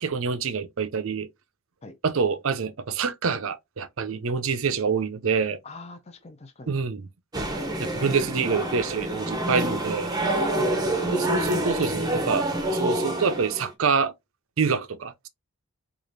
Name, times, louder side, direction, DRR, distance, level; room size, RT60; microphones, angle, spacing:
voice 1, 0.0-1.3 2.0-5.6 6.7-7.1 7.8-10.1 11.1-12.5 12.7-14.1 14.6-15.3, right 5 dB, 65° right, 0.5 m, -26 dB
voice 2, 5.6-6.7 10.5-11.2, left 3 dB, 30° left, 0.5 m, -43 dB
sound 1, 7.3-13.7, right 1 dB, 15° right, 0.7 m, -27 dB
4.8 x 2.5 x 2.6 m
head